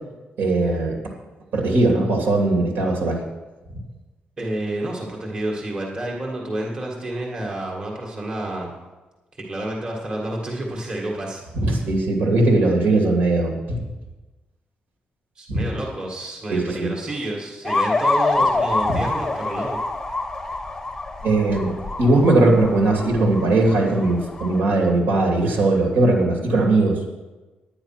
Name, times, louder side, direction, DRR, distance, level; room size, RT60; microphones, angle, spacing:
voice 1, 0.4-1.0 1.5-3.2 11.6-13.8 15.5-15.6 16.5-16.9 21.2-21.7 22.0-27.0, right 2 dB, 70° right, 1 dB, 2.8 m, -19 dB
voice 2, 4.4-8.7 9.5-11.4 15.4-19.8, right 1 dB, 25° right, -2 dB, 1.9 m, -29 dB
sound 1, 17.6-24.6, left 2 dB, 15° left, 0.8 m, -26 dB
10.0 x 10.0 x 6.0 m, 1.2 s
wide cardioid pair, 175°, 3 cm